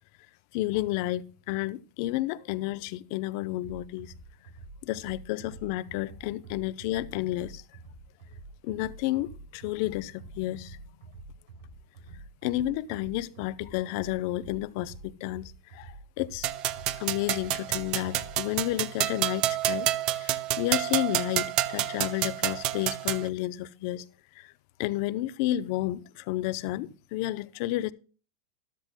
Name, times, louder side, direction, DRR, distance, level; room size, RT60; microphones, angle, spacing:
voice 1, 0.5-4.1 4.8-7.6 8.6-10.8 12.1-16.5 17.0-24.0 24.4-24.5 24.8-27.9, left 15 dB, 55° left, 0.7 m, -31 dB
sound 1, 3.6-18.6, right 3 dB, 85° right, 5.3 m, -48 dB
sound 2, 16.4-23.3, right 13 dB, 40° right, 0.7 m, -29 dB
14.0 x 12.0 x 2.2 m
supercardioid pair, 130°, 2 cm